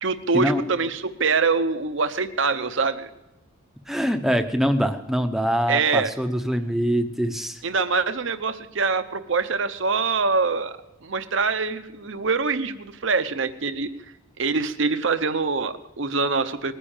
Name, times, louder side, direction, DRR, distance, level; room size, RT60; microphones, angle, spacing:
voice 1, 0.0-3.1 5.7-6.1 7.6-10.8 11.0-13.9 14.4-16.7, right 4 dB, 60° right, 10 dB, 0.8 m, -24 dB
voice 2, 3.9-7.6, equal, ahead, 6 dB, 0.7 m, -24 dB
20.0 x 10.0 x 7.2 m, 0.93 s
head